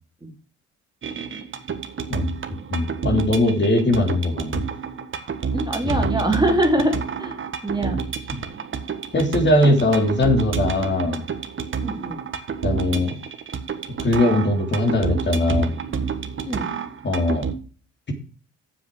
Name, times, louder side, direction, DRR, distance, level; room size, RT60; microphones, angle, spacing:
sound 1, 1.0-17.5, right 6 dB, 40° right, 1.6 m, -29 dB
voice 1, 2.7-4.6 5.9-6.0 8.3-8.4 9.1-11.2 12.6-13.1 14.0-15.7 17.0-17.4, left 1 dB, 35° left, 4 dB, 3.1 m, -20 dB
voice 2, 5.5-7.4 7.6-8.0 11.8-12.2 16.4-16.7, right 1 dB, 15° right, 3 dB, 2.9 m, -23 dB
7.8 x 7.1 x 6.1 m, 0.38 s
cardioid pair, 90°, 30 cm